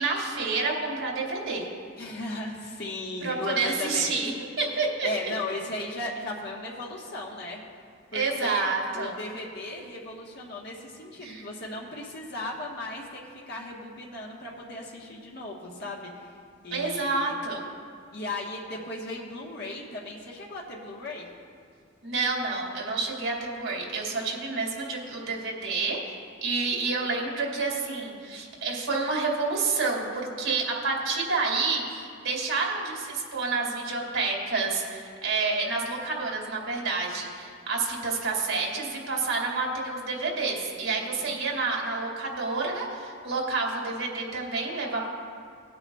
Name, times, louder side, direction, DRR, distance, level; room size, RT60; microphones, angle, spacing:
voice 1, 0.0-1.7 3.2-4.3 4.6-5.1 8.1-9.1 11.2-11.4 16.7-17.6 22.0-26.0 26.4-45.1, right 3 dB, 85° right, -1 dB, 2.4 m, -29 dB
voice 2, 2.0-4.2 5.0-7.6 8.1-16.3 16.6-17.4 18.1-21.3 40.9-41.4, left 2 dB, 55° left, -3 dB, 1.3 m, -36 dB
18.5 x 8.8 x 2.4 m, 2.2 s
head